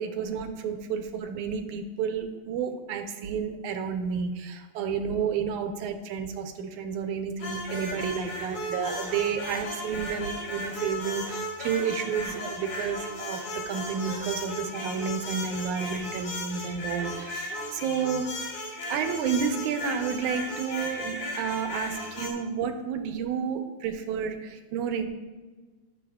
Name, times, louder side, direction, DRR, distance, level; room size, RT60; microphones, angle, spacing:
voice 1, 0.0-18.3 18.9-25.1, right 7 dB, 85° right, 6 dB, 2.2 m, -31 dB
sound 1, 7.4-22.3, left 1 dB, 75° left, 3.0 m, -36 dB
16.0 x 6.9 x 2.4 m, 1.3 s
omnidirectional pair, 3.4 m